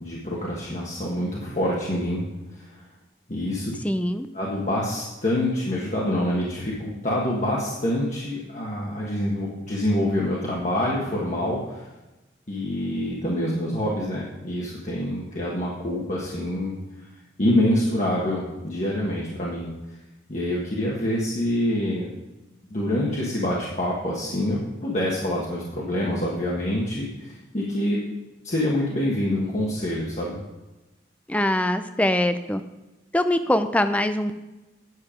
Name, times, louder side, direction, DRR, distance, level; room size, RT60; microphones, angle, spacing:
voice 1, 0.0-2.2 3.3-3.7 4.3-11.7 12.5-16.8 17.4-19.7 20.3-22.1 22.7-28.0 28.4-30.4, left 1 dB, 40° left, -5 dB, 1.4 m, -26 dB
voice 2, 3.8-4.3 31.3-32.6 33.1-34.4, left 1 dB, 10° left, 10 dB, 0.4 m, -23 dB
9.6 x 6.9 x 5.1 m, 1.1 s
head